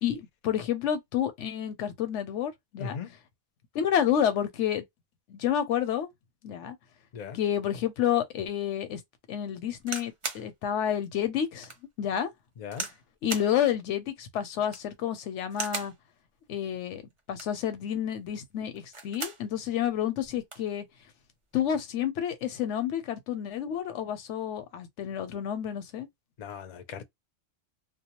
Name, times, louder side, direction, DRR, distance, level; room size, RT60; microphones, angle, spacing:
voice 1, 0.0-3.0 3.7-4.8 5.3-6.1 6.4-6.8 7.3-9.0 9.3-11.7 12.0-12.3 13.2-15.9 16.5-17.0 17.3-20.8 21.5-26.1, left 9 dB, 85° left, 0.9 m, -29 dB
voice 2, 2.8-3.1 7.1-7.4 12.6-12.9 26.4-27.0, left 6 dB, 55° left, 0.5 m, -38 dB
sound 1, 9.8-10.5 11.0-11.1 11.6-11.8 12.7-13.0 13.3-13.5 14.6-14.9 15.5-16.0 17.2-17.6 18.7-19.4 19.9-20.0 20.2-20.7 21.5-21.8, right 4 dB, 40° right, 0.4 m, -37 dB
2.2 x 2.2 x 2.8 m
omnidirectional pair, 1.2 m